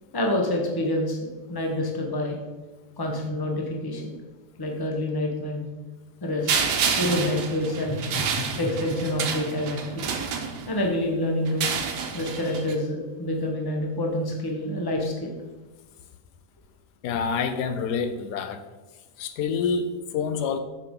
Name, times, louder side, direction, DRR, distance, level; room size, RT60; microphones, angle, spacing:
voice 1, 0.1-2.4 3.0-4.1 4.6-5.6 6.2-6.6 6.9-10.1 10.7-11.7 12.1-15.3, left 1 dB, 15° left, 1 dB, 0.9 m, -27 dB
sound 1, 6.5-10.9 11.5-12.7, right 6 dB, 85° right, 1.4 m, -29 dB
voice 2, 17.0-18.6 19.2-20.6, left 5 dB, 80° left, 9 dB, 1.2 m, -27 dB
6.8 x 6.7 x 3.7 m, 1.2 s
omnidirectional pair, 1.8 m